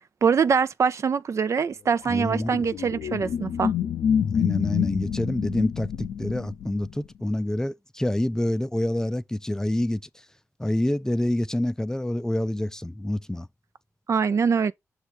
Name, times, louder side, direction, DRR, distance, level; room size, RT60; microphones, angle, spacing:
voice 1, 0.2-3.7 14.1-14.7, right 6 dB, 55° right, 0.4 m, -23 dB
sound 1, 2.0-7.1, left 8 dB, 85° left, 0.5 m, -28 dB
voice 2, 2.1-2.6 4.3-10.0 10.6-13.5, left 1 dB, 10° left, 0.4 m, -27 dB
6.2 x 3.4 x 4.6 m
cardioid pair, 65°, 6 cm